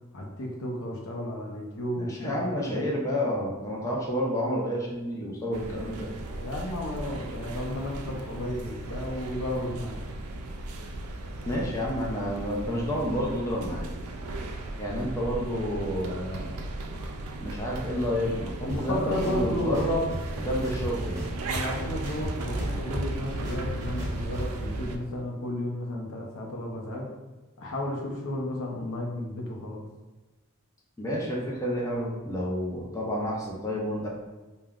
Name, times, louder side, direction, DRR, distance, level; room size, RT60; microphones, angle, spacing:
voice 1, 0.1-2.8 6.4-10.1 18.6-20.0 21.5-27.1 27.6-29.9, left 1 dB, 65° left, 0 dB, 0.5 m, -33 dB
voice 2, 2.0-6.1 11.5-13.9 14.8-16.6 17.4-20.1 20.4-21.3 31.0-34.1, equal, 15° left, -4 dB, 0.4 m, -30 dB
sound 1, 5.5-25.0, right 2 dB, 80° right, 0.3 m, -36 dB
sound 2, 18.7-18.8 19.2-20.2 20.6-21.7 22.0-24.4, left 1 dB, 15° right, 0.9 m, -36 dB
3.4 x 2.1 x 2.3 m, 1.2 s
head